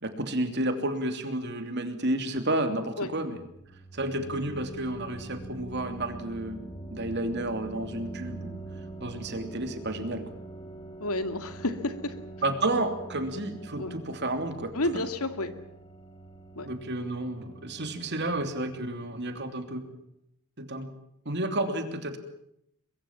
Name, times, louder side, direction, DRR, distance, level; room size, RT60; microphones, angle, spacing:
voice 1, 0.0-3.4 3.9-8.6 9.0-10.3 12.4-14.7 16.6-19.8 20.6-20.9 21.2-22.2, right 1 dB, 50° right, 8 dB, 3.0 m, -31 dB
sound 1, 3.0-19.7, right 2 dB, 25° left, 3.0 m, -44 dB
voice 2, 11.0-12.2 13.8-14.0 14.7-15.6 16.6-16.7, left 2 dB, 80° left, 9 dB, 2.4 m, -30 dB
23.0 x 23.0 x 7.4 m, 0.75 s
head